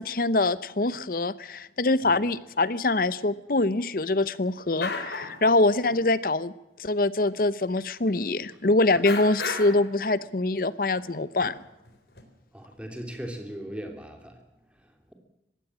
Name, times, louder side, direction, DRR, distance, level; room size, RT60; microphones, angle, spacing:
voice 1, 0.0-6.5 6.8-11.5, left 2 dB, 55° left, 17 dB, 0.8 m, -24 dB
sound 1, 4.4-4.5 4.8-5.4 5.7-6.1 6.8-6.9 7.3-7.4 8.6-8.7 9.0-9.9 10.9-11.0 11.4-12.2, left 3 dB, 75° left, 3.8 m, -34 dB
voice 2, 12.5-14.3, equal, 5° right, 3 dB, 3.3 m, -38 dB
21.5 x 16.5 x 7.5 m, 0.91 s
head